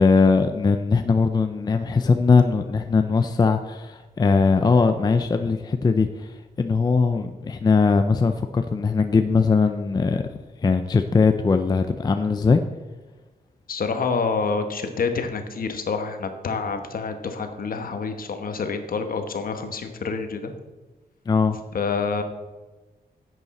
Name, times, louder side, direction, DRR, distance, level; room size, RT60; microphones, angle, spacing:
voice 1, 0.0-10.2 10.6-12.6 21.3-21.6, left 4 dB, 25° left, 7 dB, 0.4 m, -20 dB
voice 2, 13.7-20.5 21.7-22.2, left 5 dB, 60° left, 7 dB, 1.1 m, -27 dB
10.5 x 8.1 x 4.2 m, 1.2 s
wide cardioid pair, 175°, 17 cm